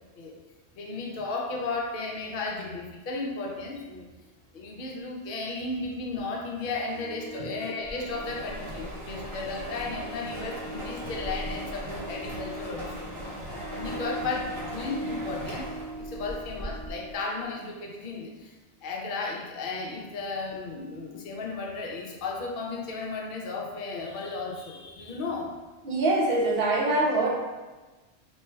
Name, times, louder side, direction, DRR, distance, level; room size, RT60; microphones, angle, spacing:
voice 1, 0.8-4.1 4.5-13.1 13.7-15.7 16.0-18.6 18.8-25.5, left 3 dB, 55° left, 0 dB, 0.7 m, -34 dB
Harp, 6.6-17.7, equal, 20° left, 0.6 m, -42 dB
sound 1, 7.9-17.2, right 1 dB, 30° right, 0.7 m, -39 dB
voice 2, 25.8-27.3, right 2 dB, 60° right, -3 dB, 0.9 m, -24 dB
4.2 x 3.1 x 2.3 m, 1.2 s
omnidirectional pair, 1.2 m